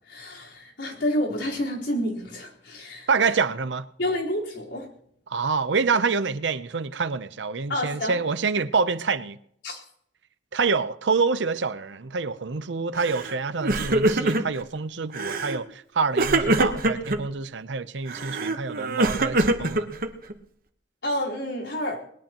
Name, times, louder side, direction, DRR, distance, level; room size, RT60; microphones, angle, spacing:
voice 1, 0.1-3.1 4.0-4.9 7.7-8.1 9.6-9.8 21.0-22.0, left 1 dB, 90° left, 4.2 m, -29 dB
voice 2, 3.1-3.9 5.3-9.4 10.5-19.9, right 4 dB, 85° right, 0.7 m, -26 dB
Crying sobbing, 13.0-13.3 13.6-14.6 15.1-15.6 16.2-17.2 18.1-20.3, right 2 dB, 55° right, 1.1 m, -24 dB
20.5 x 19.0 x 3.0 m
head